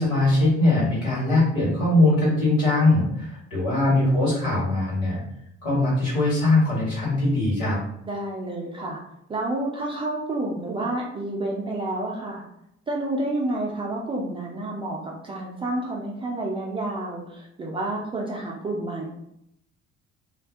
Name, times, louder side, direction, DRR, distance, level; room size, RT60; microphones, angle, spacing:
voice 1, 0.0-5.2 5.6-7.8, left 2 dB, 65° left, -7 dB, 1.5 m, -21 dB
voice 2, 8.0-9.0 9.3-12.4 12.9-19.2, right 2 dB, 15° right, -3 dB, 0.3 m, -29 dB
2.4 x 2.2 x 2.5 m, 0.77 s
figure-of-eight pair, 50°, 37 cm